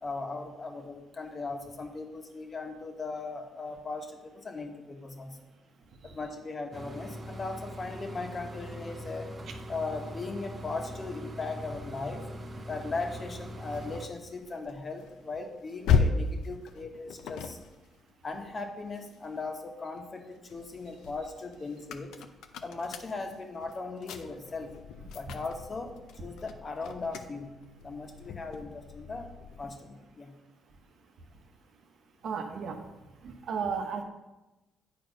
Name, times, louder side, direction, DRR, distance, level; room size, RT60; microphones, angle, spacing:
voice 1, 0.0-5.5 6.0-9.3 9.7-12.3 12.7-17.6 18.2-22.2 22.6-24.7 25.1-25.9 26.2-27.5 27.8-29.3 29.6-30.3, left 3 dB, 35° left, 4 dB, 1.3 m, -38 dB
sound 1, 6.7-14.1, equal, 35° right, 0.9 m, -42 dB
sound 2, 13.0-19.5 20.0-29.8, left 5 dB, 85° left, 0.6 m, -36 dB
voice 2, 32.2-32.8 33.2-34.0, right 6 dB, 65° right, 5 dB, 1.1 m, -34 dB
9.1 x 4.4 x 5.2 m, 1.0 s
cardioid pair, 90°, 0 cm